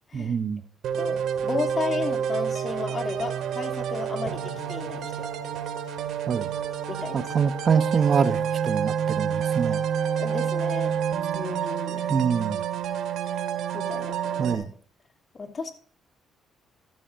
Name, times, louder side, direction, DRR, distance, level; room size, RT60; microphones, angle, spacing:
voice 1, 0.1-0.6 6.3-6.5 7.1-9.8 12.1-12.6 14.4-14.7, right 6 dB, 45° right, 1.0 m, -25 dB
sound 1, 0.8-14.5, right 8 dB, 80° right, 2.2 m, -28 dB
voice 2, 1.0-5.3 6.9-7.5 10.2-10.9 11.3-12.0 13.7-14.6 15.3-15.7, left 4 dB, 40° left, 2.9 m, -34 dB
14.0 x 13.5 x 2.6 m
cardioid pair, 90°, 0 cm